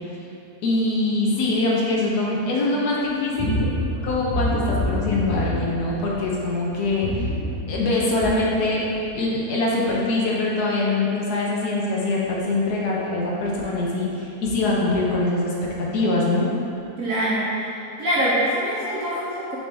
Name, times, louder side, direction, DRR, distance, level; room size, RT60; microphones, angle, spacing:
voice 1, 0.6-3.5 4.0-7.2 7.7-8.8 9.1-16.5, left 2 dB, 70° left, -4 dB, 1.5 m, -23 dB
sound 1, 3.4-6.4 6.8-8.6 9.0-9.2, left 1 dB, 30° left, 0.4 m, -26 dB
voice 2, 17.0-17.5 18.0-19.6, equal, 60° right, -7 dB, 1.1 m, -23 dB
6.5 x 4.3 x 3.5 m, 2.9 s
omnidirectional pair, 1.8 m